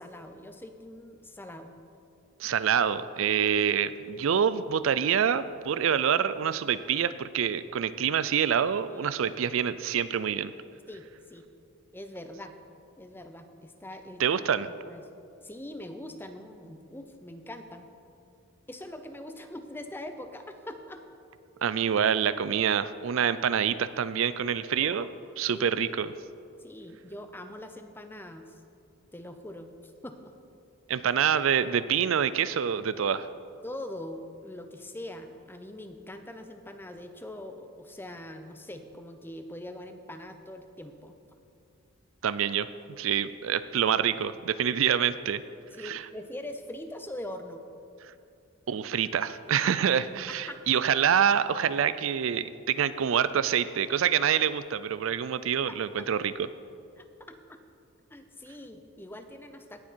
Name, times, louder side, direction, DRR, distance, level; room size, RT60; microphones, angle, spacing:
voice 1, 0.0-1.7 8.9-9.1 10.9-11.5 11.9-12.5 13.0-15.1 15.4-17.9 18.7-21.0 24.8-25.1 25.5-25.7 26.6-28.6 29.1-30.4 33.6-41.2 45.7-47.6 50.3-50.8 55.7-56.1 57.0-57.6 58.1-59.8, left 1 dB, 10° left, 7 dB, 0.6 m, -43 dB
voice 2, 2.4-10.5 14.2-14.7 21.6-25.1 25.4-26.1 30.9-33.3 42.2-42.7 43.0-45.4 45.8-46.0 48.7-56.3, right 8 dB, 75° right, 15 dB, 0.4 m, -26 dB
18.0 x 7.3 x 4.5 m, 2.5 s
head